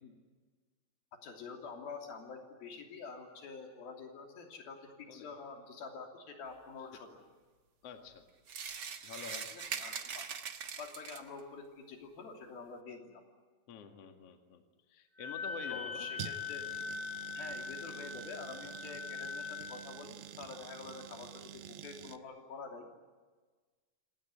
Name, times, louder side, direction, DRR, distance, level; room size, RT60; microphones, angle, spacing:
voice 1, 1.2-7.2 9.5-10.2 10.8-13.2 15.7-16.6 17.3-22.9, left 4 dB, 85° left, 3 dB, 4.9 m, -47 dB
voice 2, 7.8-8.2 9.0-9.5 13.7-16.1, left 6 dB, 50° left, 5 dB, 2.7 m, -48 dB
sound 1, 8.5-11.4, right 6 dB, 60° right, 1.1 m, -41 dB
Wind instrument woodwind instrument, 15.2-19.9, left 6 dB, 15° right, 7.8 m, -42 dB
sound 2, 16.2-22.2, right 10 dB, 80° right, 2.8 m, -48 dB
27.5 x 18.0 x 9.6 m, 1.4 s
omnidirectional pair, 4.1 m